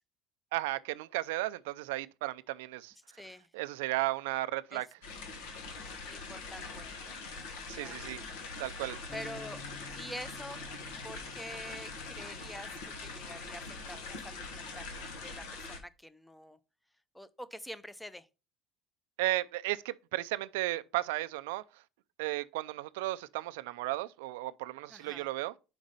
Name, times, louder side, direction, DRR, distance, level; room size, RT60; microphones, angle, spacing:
voice 1, 0.5-2.9 3.5-4.9 7.7-8.2 8.6-9.0 19.2-21.6 22.2-25.5, right 18 dB, 90° right, 0.3 m, -34 dB
voice 2, 3.1-3.5 4.7-4.8 6.1-7.0 7.8-8.0 9.1-9.6 9.9-10.6 11.0-12.7 13.0-14.9 15.2-16.6 17.1-18.3 24.9-25.3, equal, 5° left, 0.5 m, -46 dB
sound 1, 5.0-15.8, left 3 dB, 85° left, 1.4 m, -43 dB
Bass guitar, 9.1-15.3, left 5 dB, 25° left, 1.0 m, -54 dB
5.2 x 5.0 x 5.4 m
supercardioid pair, 110°, 0 cm